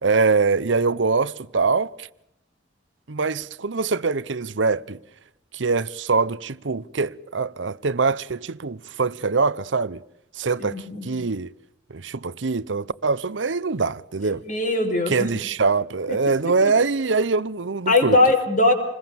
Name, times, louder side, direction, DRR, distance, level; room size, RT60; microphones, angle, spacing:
voice 1, 0.0-2.1 3.1-5.0 5.5-10.0 10.4-11.5 11.9-14.4 15.1-18.2, right 4 dB, 85° right, 0.8 m, -23 dB
voice 2, 10.6-11.1 14.4-15.3 16.1-16.2 17.9-18.7, left 2 dB, 45° left, 5.6 m, -20 dB
27.5 x 21.0 x 7.1 m
head